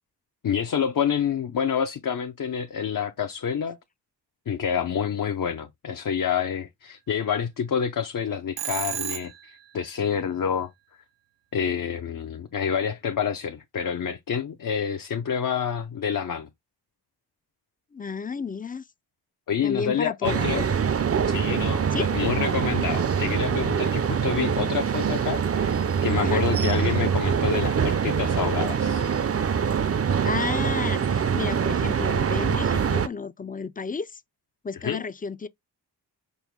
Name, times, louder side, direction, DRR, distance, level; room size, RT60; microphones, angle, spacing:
voice 1, 0.4-3.8 4.5-10.7 11.5-16.5 19.5-20.7 21.3-29.1 34.8-35.0, left 7 dB, 55° left, 0.7 m, -28 dB
Telephone, 8.6-9.6, right 10 dB, 85° right, 0.6 m, -32 dB
voice 2, 17.9-18.8 19.6-20.7 21.9-22.1 26.2-26.4 30.2-34.2 34.6-35.5, left 5 dB, 20° left, 0.4 m, -32 dB
sound 1, 20.2-33.1, right 7 dB, 35° right, 0.5 m, -24 dB
5.4 x 2.1 x 4.6 m
cardioid pair, 55°, 41 cm